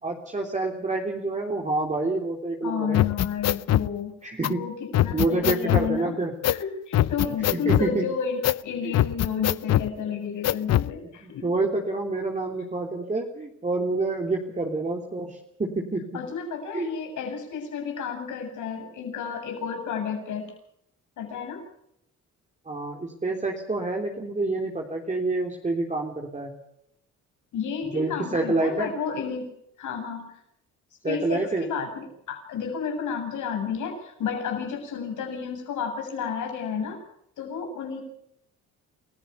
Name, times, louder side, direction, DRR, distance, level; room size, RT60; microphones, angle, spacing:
voice 1, 0.0-3.1 4.2-4.6 5.1-6.3 7.5-8.0 8.8-9.0 11.2-16.0 16.7-16.9 22.6-26.5 27.9-28.9 31.0-31.7, right 2 dB, 25° right, 1 dB, 3.3 m, -28 dB
voice 2, 2.6-4.1 4.5-6.2 6.5-11.5 16.1-20.5 21.2-21.6 27.5-29.5 29.8-30.4 31.0-37.0 37.4-38.0, left 6 dB, 80° left, 4 dB, 7.7 m, -31 dB
sound 1, 2.9-3.9 4.4-4.5 4.9-5.9 6.4-6.6 6.9-7.9 8.4-8.6 8.9-9.9 10.4-10.9, left 13 dB, 60° left, 0.7 m, -22 dB
28.0 x 15.5 x 7.0 m, 0.74 s
cardioid pair, 90°, 30 cm